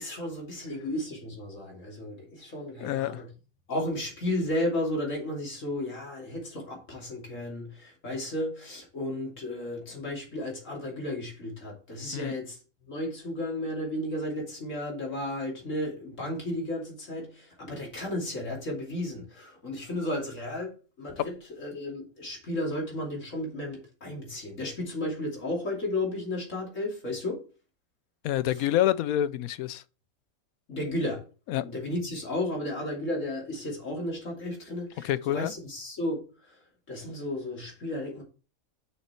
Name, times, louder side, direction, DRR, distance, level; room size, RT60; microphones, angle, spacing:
voice 1, 0.0-3.3 3.7-12.6 12.9-27.5 28.5-28.7 30.7-31.3 31.6-38.2, left 1 dB, 60° left, 3.1 m, -33 dB
voice 2, 2.8-3.2 12.1-12.3 28.2-29.8 31.5-31.6 35.0-35.5, left 12 dB, 80° left, 1.0 m, -27 dB
6.7 x 5.9 x 4.4 m
omnidirectional pair, 1.5 m